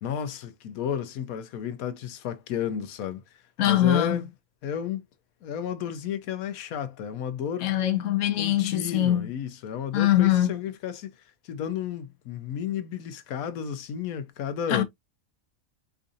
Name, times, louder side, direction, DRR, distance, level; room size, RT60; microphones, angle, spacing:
voice 1, 0.0-3.2 3.6-4.3 4.6-5.0 5.4-7.7 8.4-11.1 11.4-14.8, left 8 dB, 90° left, 1.1 m, -32 dB
voice 2, 3.6-4.2 7.6-9.3 9.9-10.6 14.7-14.8, left 12 dB, 65° left, 1.0 m, -23 dB
4.6 x 2.5 x 2.5 m
omnidirectional pair, 1.5 m